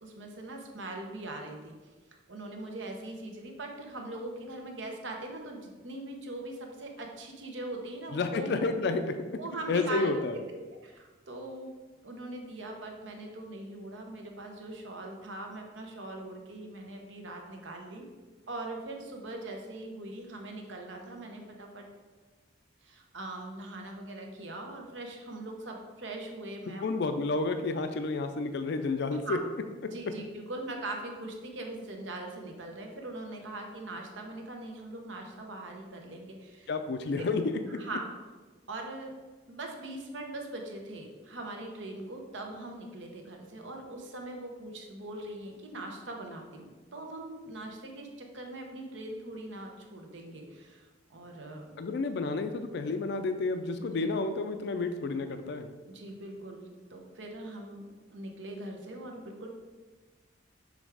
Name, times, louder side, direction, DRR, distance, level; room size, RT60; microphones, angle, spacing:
voice 1, 0.0-1.7 2.3-8.6 9.4-10.3 10.7-11.7 12.0-18.0 18.5-21.9 22.8-26.8 29.2-29.4 29.9-36.7 37.2-37.3 37.7-38.1 38.7-39.1 39.5-51.7 53.9-54.1 55.9-59.5, right 2 dB, 80° right, 2 dB, 1.0 m, -41 dB
voice 2, 8.1-9.2 9.7-10.4 26.8-29.4 36.7-37.4 51.8-55.7, left 3 dB, 60° left, 8 dB, 0.4 m, -30 dB
6.3 x 3.4 x 4.8 m, 1.3 s
head